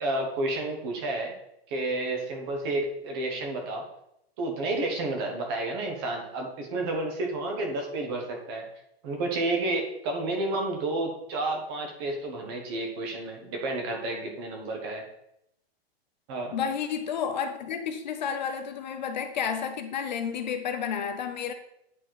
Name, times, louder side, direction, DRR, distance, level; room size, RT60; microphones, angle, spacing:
voice 1, 0.0-1.3 1.7-3.8 4.4-8.6 9.0-15.0 16.3-16.5, right 2 dB, 25° right, 1.1 m, -30 dB
voice 2, 16.5-21.5, left 7 dB, 45° left, 0.6 m, -31 dB
8.8 x 4.3 x 4.6 m
supercardioid pair, 180°, 31 cm